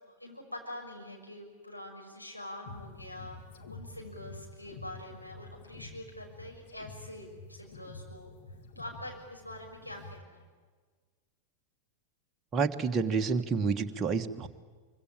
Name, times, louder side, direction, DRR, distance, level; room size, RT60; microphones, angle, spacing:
voice 1, 0.0-3.4 3.7-8.3 8.7-10.5, left 1 dB, 90° left, 0 dB, 6.3 m, -45 dB
sound 1, 2.7-10.2, left 3 dB, 55° left, 2.2 m, -49 dB
voice 2, 12.5-14.5, right 5 dB, 20° right, 3 dB, 1.5 m, -29 dB
25.0 x 24.5 x 9.0 m, 1.5 s
figure-of-eight pair, 90°, 0 cm